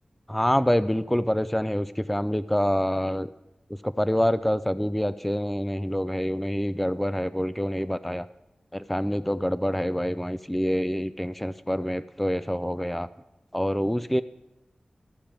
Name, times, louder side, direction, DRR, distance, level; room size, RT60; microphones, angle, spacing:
voice 1, 0.3-3.3 3.8-8.3 8.7-13.1 13.5-14.2, equal, 5° left, 14 dB, 0.4 m, -26 dB
14.0 x 5.0 x 7.2 m, 0.93 s
wide cardioid pair, 65°, 3 cm